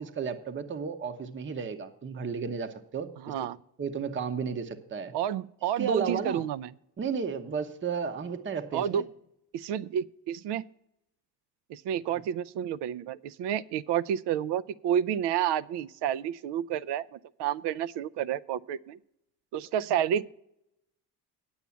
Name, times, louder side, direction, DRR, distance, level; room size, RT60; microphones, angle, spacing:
voice 1, 0.0-3.1 3.8-5.1 5.8-6.5 7.0-9.0, right 6 dB, 25° right, 8 dB, 0.8 m, -33 dB
voice 2, 3.2-3.6 5.1-6.7 8.7-9.0 9.5-10.6 11.7-19.0 19.5-20.3, right 9 dB, 60° right, 18 dB, 0.5 m, -30 dB
9.1 x 7.1 x 7.1 m, 0.81 s
supercardioid pair, 70°, 47 cm